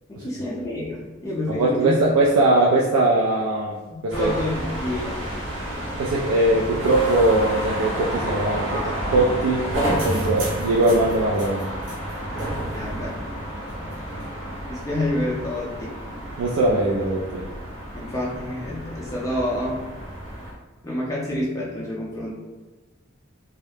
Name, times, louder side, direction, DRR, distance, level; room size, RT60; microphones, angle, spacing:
voice 1, 0.1-2.0 3.9-5.2 8.7-8.9 12.7-13.3 13.8-14.0 14.7-15.9 17.9-19.8 20.8-22.3, left 1 dB, 15° left, -5 dB, 0.3 m, -28 dB
voice 2, 1.5-3.8 4.0-4.3 6.0-8.8 9.1-9.7 10.0-11.7 14.1-14.2 16.4-17.5, right 2 dB, 85° right, -3 dB, 0.3 m, -20 dB
sound 1, 4.1-20.5, right 1 dB, 65° right, 0.7 m, -30 dB
2.3 x 2.0 x 3.1 m, 1.2 s
head